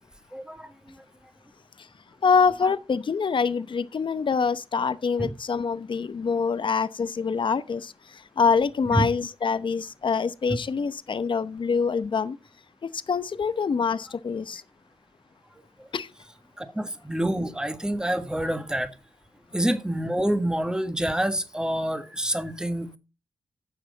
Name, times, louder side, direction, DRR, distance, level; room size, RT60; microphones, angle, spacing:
voice 1, 0.3-1.0 5.2-5.3 8.9-9.0 16.6-18.9 19.5-23.0, right 1 dB, 5° right, 1.6 m, -27 dB
voice 2, 2.2-12.4 12.8-14.6 15.9-16.1, left 5 dB, 55° left, 0.8 m, -25 dB
12.0 x 7.3 x 4.0 m
cardioid pair, 50°, 10 cm